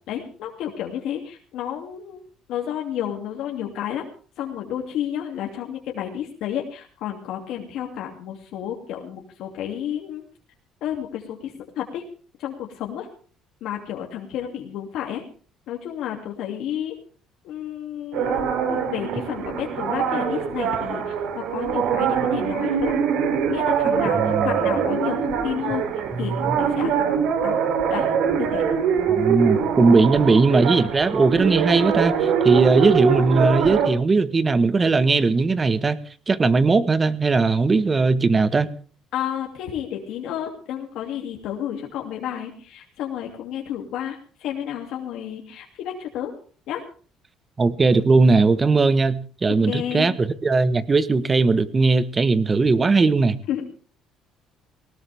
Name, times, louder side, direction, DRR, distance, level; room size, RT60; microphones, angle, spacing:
voice 1, 0.1-2.2 2.5-4.0 4.4-10.2 10.8-12.0 12.4-13.1 13.6-15.2 15.7-17.0 17.4-22.9 23.5-25.8 26.2-27.5 27.9-28.1 28.4-28.7 30.0-30.1 32.5-32.7 39.1-46.3 46.7-46.8 49.6-50.1 53.5-53.6, left 10 dB, 75° left, 0 dB, 2.7 m, -31 dB
sound 1, 18.1-33.9, right 7 dB, 75° right, 3.3 m, -23 dB
voice 2, 24.1-24.5 26.1-26.6 29.1-36.0 36.3-38.7 47.6-53.4, right 3 dB, 25° right, 14 dB, 1.3 m, -19 dB
19.5 x 18.0 x 3.6 m, 0.40 s
cardioid pair, 105°, 0 cm